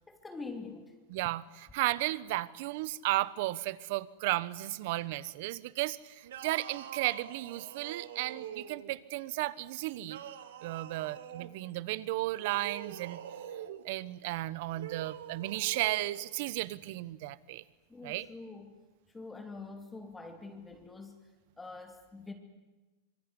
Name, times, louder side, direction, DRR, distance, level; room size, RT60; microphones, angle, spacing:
voice 1, 0.1-0.9 17.9-18.8 19.1-21.2 21.6-22.3, left 3 dB, 10° left, 4 dB, 2.8 m, -45 dB
voice 2, 1.1-10.2 10.6-13.2 13.8-17.6 18.0-18.3, right 17 dB, 60° right, 18 dB, 1.2 m, -34 dB
sound 1, 6.2-9.0 10.0-11.5 12.3-13.9 14.7-16.2, right 9 dB, 85° right, 2.1 m, -44 dB
25.5 x 23.0 x 9.9 m, 1.2 s
supercardioid pair, 135°, 0 cm